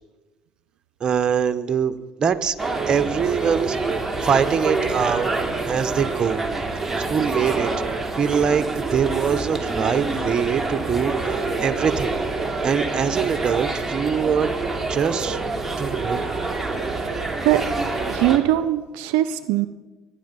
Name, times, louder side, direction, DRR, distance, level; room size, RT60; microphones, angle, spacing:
voice 1, 1.0-2.5 2.9-3.8 4.2-5.3 5.7-6.4 7.0-7.7 8.2-12.1 12.6-14.5 14.9-15.4 15.8-16.2, right 7 dB, 40° right, 10 dB, 1.0 m, -23 dB
sound 1, 2.6-18.4, right 3 dB, 15° right, 2.8 m, -26 dB
voice 2, 18.1-19.7, right 13 dB, 85° right, 12 dB, 0.5 m, -21 dB
22.0 x 9.8 x 5.4 m, 1.2 s
supercardioid pair, 80°, 2 cm